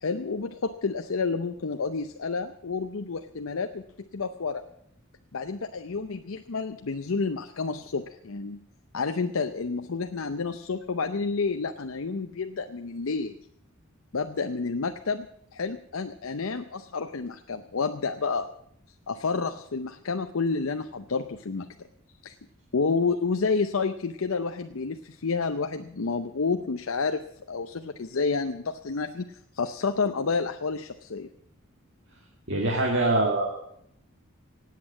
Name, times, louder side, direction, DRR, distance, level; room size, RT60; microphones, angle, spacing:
voice 1, 0.0-4.6 5.3-8.6 8.9-13.4 14.1-15.3 15.5-18.5 19.1-21.7 22.2-22.3 22.7-31.3, left 4 dB, 70° left, 7 dB, 0.7 m, -30 dB
voice 2, 32.5-33.6, right 2 dB, 60° right, 1 dB, 2.1 m, -24 dB
17.5 x 8.5 x 7.2 m, 0.73 s
head